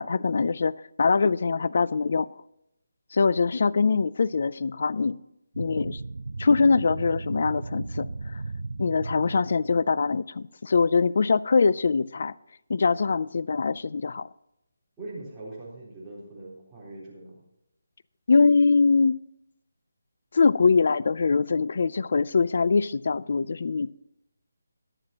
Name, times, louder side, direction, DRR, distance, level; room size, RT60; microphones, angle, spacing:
voice 1, 0.0-2.3 3.1-5.2 5.6-6.0 6.4-8.1 8.8-12.3 12.7-14.3 18.3-19.2 20.3-23.9, left 4 dB, 50° left, 20 dB, 0.4 m, -23 dB
sound 1, 5.5-9.8, right 3 dB, 80° right, 0.4 m, -35 dB
voice 2, 15.0-17.3, right 2 dB, 5° right, -10 dB, 3.8 m, -41 dB
21.5 x 7.8 x 2.9 m, 0.83 s
hypercardioid pair, 170°, 0 cm